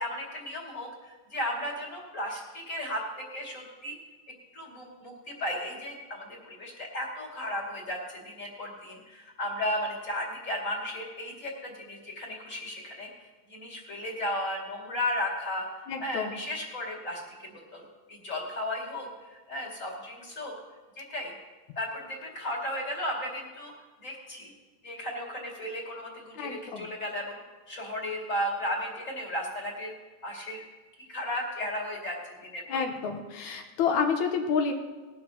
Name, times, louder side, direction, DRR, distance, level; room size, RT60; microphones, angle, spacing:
voice 1, 0.0-4.0 4.5-13.1 13.5-15.7 16.0-20.5 21.0-21.3 21.8-23.7 24.0-24.5 24.8-27.4 27.7-29.9 30.2-30.6 31.1-32.8, left 1 dB, 25° left, -2 dB, 2.2 m, -35 dB
voice 2, 15.9-16.4 26.4-26.9 32.7-34.7, left 6 dB, 70° left, 4 dB, 2.2 m, -29 dB
19.5 x 12.0 x 2.9 m, 1.3 s
omnidirectional pair, 4.0 m